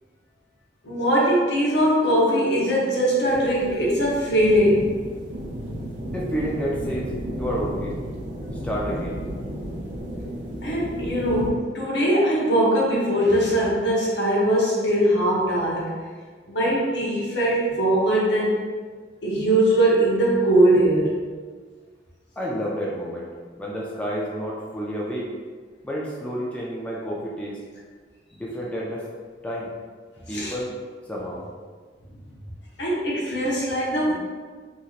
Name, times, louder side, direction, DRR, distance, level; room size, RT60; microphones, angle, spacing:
voice 1, 0.8-5.0 10.6-15.9 16.5-18.6 19.2-21.3 30.3-30.5 32.1-32.2 32.8-34.1, right 1 dB, 75° left, -5 dB, 0.8 m, -21 dB
sound 1, 3.3-11.5, equal, 85° right, 0.5 m, -33 dB
voice 2, 6.1-8.0 8.6-9.2 22.4-23.3 23.6-25.3 25.8-27.6 28.3-29.0 29.4-29.7 30.2-30.7 31.1-31.4, equal, 10° left, -5 dB, 0.4 m, -30 dB
3.0 x 2.8 x 2.4 m, 1.5 s
head